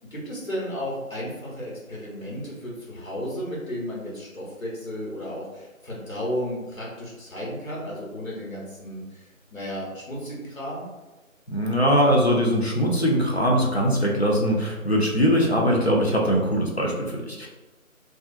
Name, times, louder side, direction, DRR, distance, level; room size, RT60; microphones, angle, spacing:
voice 1, 0.0-10.8, equal, 70° left, -4 dB, 1.2 m, -33 dB
voice 2, 11.5-17.5, equal, 50° left, -2 dB, 0.5 m, -21 dB
2.5 x 2.3 x 2.4 m, 1.1 s
figure-of-eight pair, 170°, 42 cm